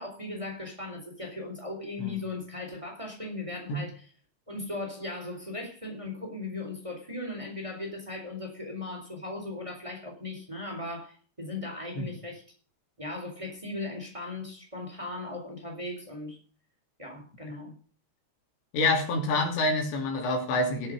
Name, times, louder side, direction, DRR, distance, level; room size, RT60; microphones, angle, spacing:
voice 1, 0.0-4.1 4.5-12.4 13.0-16.4 17.0-17.7, left 2 dB, 10° right, 1 dB, 3.7 m, -38 dB
voice 2, 18.7-20.9, left 2 dB, 90° left, 3 dB, 5.2 m, -27 dB
16.5 x 7.7 x 6.6 m, 0.40 s
omnidirectional pair, 4.9 m